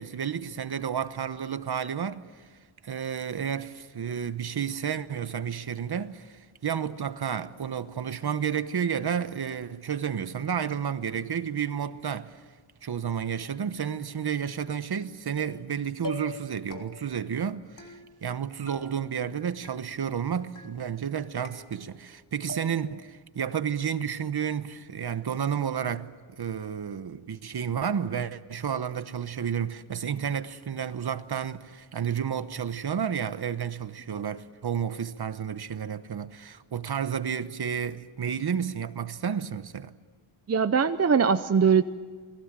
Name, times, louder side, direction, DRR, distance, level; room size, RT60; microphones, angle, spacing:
voice 1, 0.0-2.3 2.8-12.4 12.8-17.9 18.2-39.9, right 8 dB, 50° right, 1.1 m, -31 dB
sound 1, 15.4-15.7 16.0-16.4 16.7-17.2 17.8-18.4 18.7-19.3 19.6-20.2 20.5-21.1 21.4-22.1 22.5-23.0, left 3 dB, 40° left, 3.3 m, -43 dB
voice 2, 40.5-41.8, right 6 dB, 30° right, 0.7 m, -21 dB
29.5 x 21.5 x 7.5 m
wide cardioid pair, 145°, 50 cm